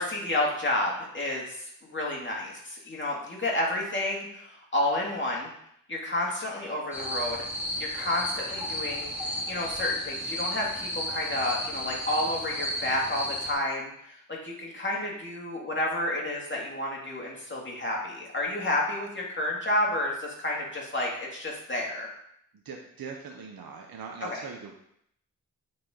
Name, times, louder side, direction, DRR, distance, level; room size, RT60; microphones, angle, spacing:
voice 1, 0.0-5.5 5.9-7.5 7.8-22.1, left 1 dB, 35° left, -3 dB, 2.4 m, -30 dB
sound 1, 6.9-13.5, equal, 5° right, 2.9 m, -33 dB
voice 2, 22.6-24.7, right 5 dB, 85° right, 2 dB, 0.8 m, -41 dB
8.5 x 4.3 x 3.8 m, 0.72 s
cardioid pair, 50°, 35 cm